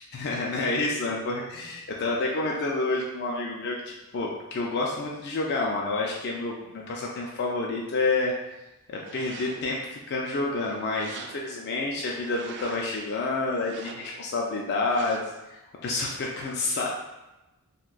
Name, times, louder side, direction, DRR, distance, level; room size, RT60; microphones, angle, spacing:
voice 1, 0.1-8.3 8.9-15.2 15.5-16.9, left 3 dB, 50° left, -2 dB, 0.4 m, -29 dB
sound 1, 8.9-9.8 10.3-11.7 12.1-13.0 13.6-14.3 14.9-15.5, right 5 dB, 55° right, 0.3 m, -44 dB
2.6 x 2.2 x 3.8 m, 1.0 s
head